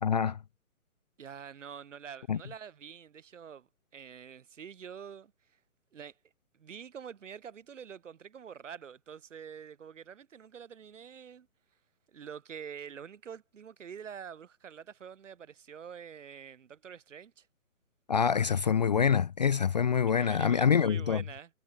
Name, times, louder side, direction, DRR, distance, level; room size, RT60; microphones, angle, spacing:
voice 1, 0.0-0.4 2.3-2.4 18.1-21.2, left 7 dB, 30° left, 0.6 m, -26 dB
voice 2, 1.2-5.3 5.9-6.2 6.5-11.5 12.1-17.5 20.2-21.5, right 7 dB, 55° right, 5.6 m, -46 dB
hypercardioid pair, 150°, 44 cm